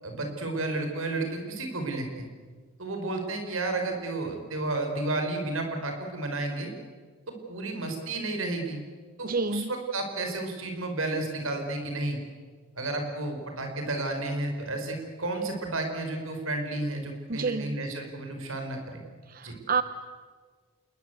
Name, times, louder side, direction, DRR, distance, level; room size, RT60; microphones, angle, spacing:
voice 1, 0.0-2.3 2.8-6.7 7.3-8.8 9.2-12.2 12.8-19.0 19.4-19.6, right 2 dB, 70° right, 3 dB, 5.2 m, -32 dB
voice 2, 9.2-9.7 17.3-17.8 19.3-19.8, right 4 dB, 40° right, 12 dB, 0.7 m, -28 dB
27.5 x 21.0 x 8.2 m, 1.6 s
head